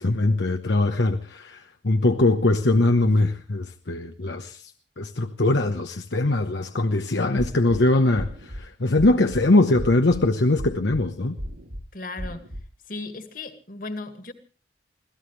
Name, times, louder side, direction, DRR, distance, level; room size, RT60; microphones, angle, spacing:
voice 1, 0.0-4.6 5.0-11.4, left 2 dB, 70° left, 1.0 m, -22 dB
sound 1, 7.4-7.8 8.2-8.6 9.0-9.4 9.8-10.2 10.6-11.0 11.4-11.8 12.2-12.6, equal, 85° right, 7.9 m, -35 dB
voice 2, 11.9-12.5 12.9-14.3, left 2 dB, 50° left, 2.2 m, -36 dB
26.0 x 17.0 x 3.3 m
head